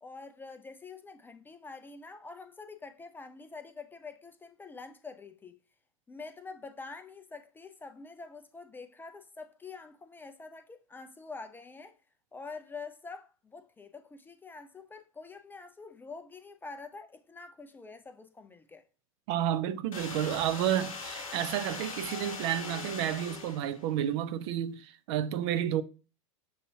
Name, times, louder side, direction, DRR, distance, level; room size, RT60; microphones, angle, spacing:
voice 1, 0.0-5.6 6.1-11.9 12.3-18.8, left 4 dB, 10° left, 0.3 m, -46 dB
voice 2, 19.3-25.8, right 11 dB, 50° right, 0.5 m, -31 dB
sound 1, 19.9-23.9, left 4 dB, 80° left, 0.9 m, -41 dB
6.3 x 2.6 x 2.7 m
hypercardioid pair, 95°, 18 cm